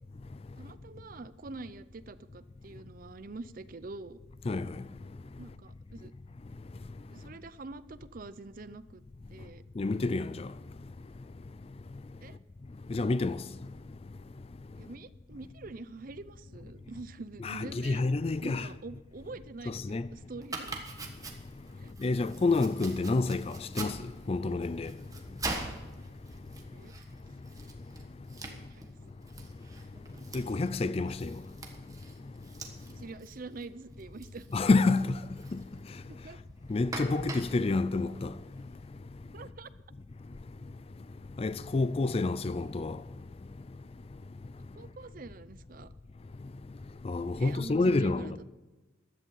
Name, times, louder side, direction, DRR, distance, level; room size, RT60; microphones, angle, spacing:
voice 1, 0.6-4.2 5.4-6.1 7.1-9.0 9.3-9.6 12.2-12.4 14.8-18.1 18.4-20.9 21.8-22.2 26.7-26.9 28.5-28.8 33.0-34.5 36.1-36.4 39.3-39.7 44.8-45.9 47.4-48.4, right 3 dB, 45° right, 0.5 m, -45 dB
voice 2, 9.8-10.5 12.9-13.4 17.4-18.7 19.7-20.1 22.0-24.0 24.3-24.9 30.3-31.4 34.5-35.2 35.5-35.6 36.7-38.3 41.4-43.0 47.0-48.3, left 3 dB, 30° left, 0.4 m, -28 dB
Domestic sounds home sounds, 20.4-38.9, right 3 dB, 15° right, 1.4 m, -45 dB
15.0 x 11.0 x 5.6 m
head